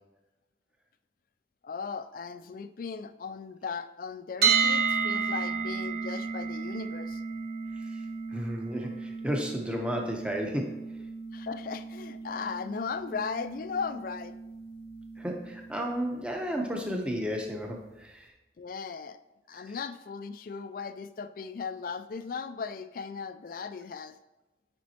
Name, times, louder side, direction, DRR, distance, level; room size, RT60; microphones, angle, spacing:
voice 1, 1.6-7.2 11.3-14.4 18.6-19.2 19.5-24.2, left 5 dB, 50° left, 12 dB, 0.3 m, -37 dB
sound 1, 4.4-16.3, right 5 dB, 65° right, 1.1 m, -33 dB
voice 2, 8.3-10.8 15.2-18.3 19.5-19.7, equal, 5° right, 1 dB, 0.8 m, -33 dB
9.3 x 5.2 x 2.9 m, 1.0 s
head